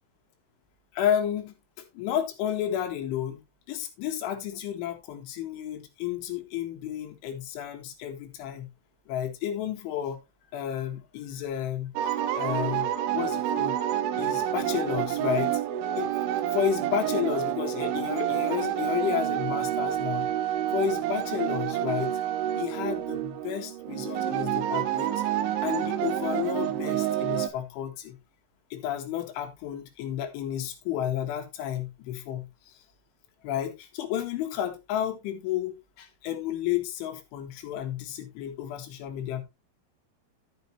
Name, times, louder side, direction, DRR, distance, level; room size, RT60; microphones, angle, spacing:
voice 1, 0.9-1.6 1.9-3.4 3.7-8.7 9.1-10.2 10.5-13.8 14.2-15.6 15.9-16.1 16.5-20.3 20.7-22.1 22.5-25.2 25.6-28.2 28.7-32.7 33.4-39.4, left 10 dB, 80° left, 4.1 m, -32 dB
sound 1, 12.0-27.5, right 11 dB, 90° right, 3.3 m, -28 dB
12.0 x 7.8 x 3.1 m
omnidirectional pair, 5.4 m